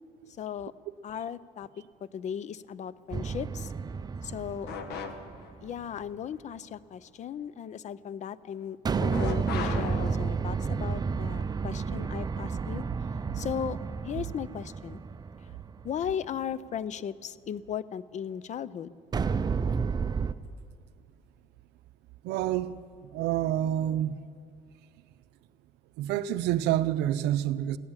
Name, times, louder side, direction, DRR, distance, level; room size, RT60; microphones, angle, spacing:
voice 1, 0.4-0.7 1.0-1.7 2.1-3.7 4.2-4.7 5.6-12.8 13.3-13.8 14.0-15.0 15.8-19.0, left 8 dB, 45° left, 0.5 m, -36 dB
sound 1, 3.1-5.7 8.8-16.1 19.1-20.3, right 5 dB, 25° right, 0.5 m, -31 dB
sound 2, 4.7-5.5 9.1-10.7, left 5 dB, 75° left, 1.2 m, -37 dB
voice 2, 22.2-22.8 23.1-24.2 26.0-27.8, right 12 dB, 90° right, 0.5 m, -27 dB
16.0 x 11.0 x 7.2 m
cardioid pair, 110°, 17 cm